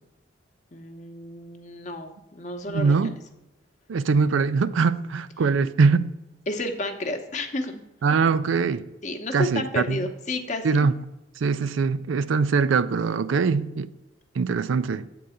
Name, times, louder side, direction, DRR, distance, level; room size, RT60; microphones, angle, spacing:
voice 1, 0.7-3.0 6.5-7.8 9.0-10.8, left 1 dB, 40° left, 0.8 m, -31 dB
voice 2, 2.7-3.1 3.9-6.1 8.0-8.9 9.3-10.0 10.6-11.0 11.4-13.9 14.4-15.0, right 5 dB, 85° right, 0.4 m, -22 dB
8.6 x 3.9 x 7.0 m
head